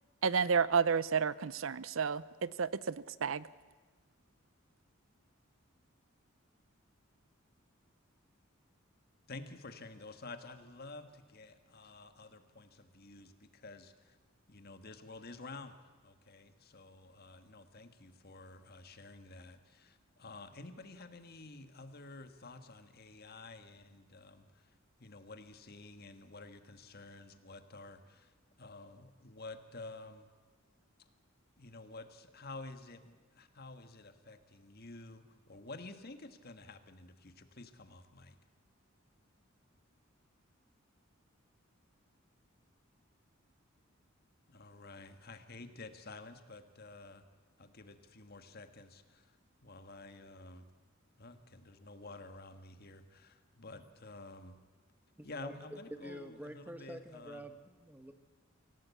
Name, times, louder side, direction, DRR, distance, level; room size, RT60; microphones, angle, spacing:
voice 1, 0.2-3.5, right 6 dB, 75° right, 18 dB, 0.6 m, -31 dB
voice 2, 9.3-14.2 14.5-30.3 31.0-31.1 31.6-38.4 44.5-47.2 47.6-49.4 49.6-50.6 51.2-54.6 55.2-57.4, left 3 dB, 50° left, 8 dB, 1.6 m, -51 dB
voice 3, 55.2-58.1, right 1 dB, 10° right, 8 dB, 1.3 m, -48 dB
25.0 x 17.0 x 8.4 m, 1.3 s
head